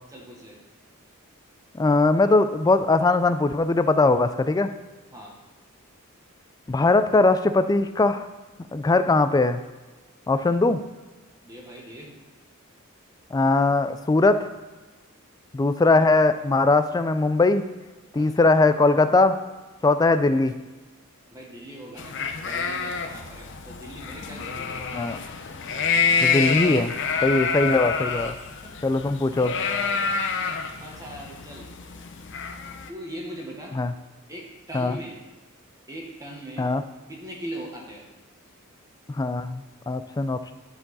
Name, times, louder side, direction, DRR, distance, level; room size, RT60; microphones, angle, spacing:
voice 1, 0.1-0.6 5.1-5.4 10.6-10.7 11.4-12.2 18.1-18.3 21.3-25.0 26.2-26.5 28.5-28.7 30.8-31.7 32.9-33.8 34.3-35.2 35.9-36.7 37.1-38.1, right 1 dB, 15° right, -2 dB, 1.1 m, -40 dB
voice 2, 1.7-4.7 6.7-8.3 8.7-9.6 10.3-10.8 13.3-14.4 15.5-17.6 18.1-19.4 19.8-20.6 24.9-25.2 26.2-26.9 27.2-28.4 28.8-29.5 33.8-33.9 34.7-35.0 36.6-36.8 39.1-40.5, left 3 dB, 20° left, 10 dB, 0.3 m, -20 dB
sound 1, 22.0-32.9, left 5 dB, 60° left, 0.6 m, -27 dB
10.0 x 4.5 x 4.1 m, 1.2 s
head